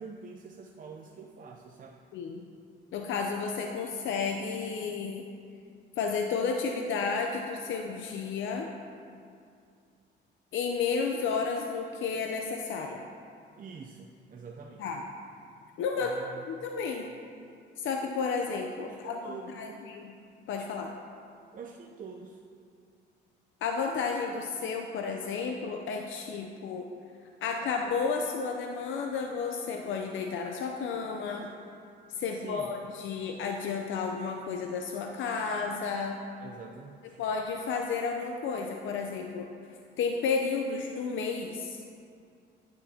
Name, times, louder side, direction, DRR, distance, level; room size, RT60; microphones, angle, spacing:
voice 1, 0.0-2.0 13.6-14.9 15.9-16.4 18.9-19.8 21.5-22.4 32.3-32.7 36.4-37.2, right 5 dB, 45° right, 0 dB, 0.6 m, -45 dB
voice 2, 2.1-2.5 2.9-5.3 6.0-8.7 10.5-13.0 14.8-15.0 15.8-16.1 16.5-17.1 17.8-20.1 20.5-20.9 23.6-26.9 27.4-31.5 32.2-36.2 37.2-39.5 40.0-41.8, left 5 dB, 75° left, 3 dB, 0.6 m, -32 dB
9.8 x 9.1 x 2.8 m, 2.4 s
cardioid pair, 90°, 20 cm